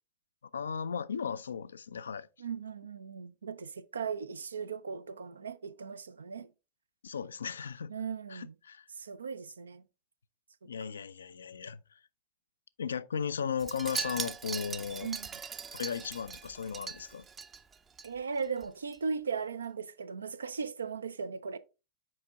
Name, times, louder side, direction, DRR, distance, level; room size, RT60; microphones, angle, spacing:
voice 1, 0.5-2.3 7.0-8.0 8.3-8.9 10.6-12.0 12.8-15.1 15.7-17.3, left 7 dB, 70° left, 0.4 m, -36 dB
voice 2, 2.4-6.5 7.9-8.5 9.0-9.8 15.0-15.4 18.0-21.6, right 5 dB, 70° right, 0.5 m, -37 dB
Wind chime, 13.6-18.1 18.4-18.7 18.9-19.0, right 6 dB, 20° right, 0.6 m, -40 dB
7.7 x 5.1 x 3.5 m
figure-of-eight pair, 90°, 0 cm